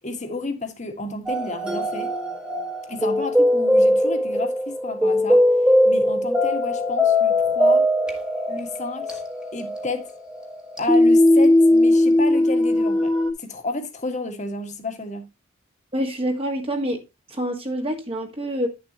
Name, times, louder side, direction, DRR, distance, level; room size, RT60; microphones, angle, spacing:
voice 1, 0.0-2.1 2.9-5.4 5.8-7.9 8.5-9.2 9.5-10.1 10.8-13.1 13.4-15.3, left 2 dB, 35° left, 1.8 m, -31 dB
sound 1, 1.3-13.3, left 1 dB, 5° right, 1.6 m, -19 dB
voice 2, 15.9-17.0 17.3-18.7, equal, 25° right, 1.6 m, -26 dB
10.5 x 7.0 x 2.9 m
head